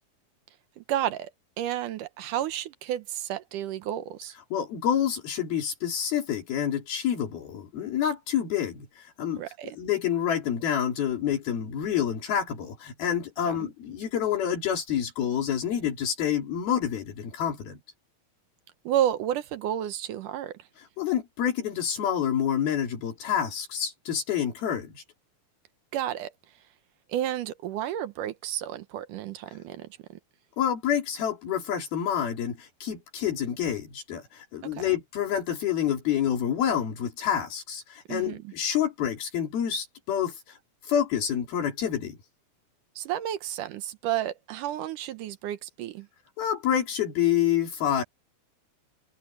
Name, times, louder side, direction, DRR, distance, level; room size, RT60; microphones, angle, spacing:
voice 1, 0.8-1.3 1.6-4.3 9.4-9.8 13.5-13.7 18.9-20.6 25.9-26.3 27.1-29.9 34.7-35.0 38.1-38.5 43.0-46.1, right 11 dB, 70° right, 2.2 m, -31 dB
voice 2, 4.5-9.4 9.8-17.8 21.0-25.0 30.6-40.6 40.8-42.2 46.4-48.0, left 9 dB, 75° left, 4.8 m, -28 dB
omnidirectional pair, 4.4 m